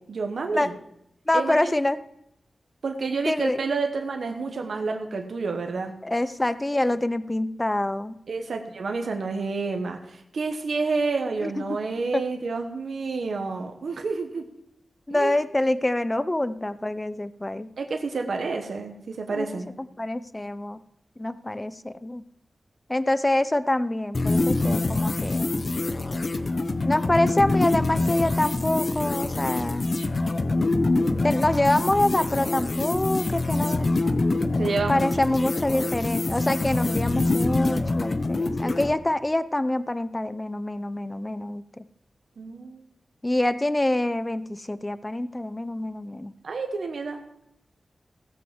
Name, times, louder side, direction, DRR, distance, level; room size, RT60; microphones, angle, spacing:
voice 1, 0.1-0.7 1.3-1.7 2.8-5.9 8.3-14.4 15.1-15.4 17.8-19.7 34.6-35.3 42.4-42.8 46.4-47.2, right 4 dB, 80° right, 4 dB, 1.1 m, -29 dB
voice 2, 1.3-2.0 3.3-3.6 6.0-8.1 11.4-11.5 12.1-12.2 15.1-17.7 19.3-19.5 20.0-20.8 21.2-22.2 22.9-25.5 26.8-29.9 31.2-34.0 34.9-41.8 43.2-46.3, left 1 dB, 25° left, 14 dB, 0.7 m, -26 dB
sound 1, 24.1-38.9, left 2 dB, 55° left, 0.9 m, -25 dB
16.0 x 5.8 x 7.4 m, 0.79 s
cardioid pair, 40°, 0 cm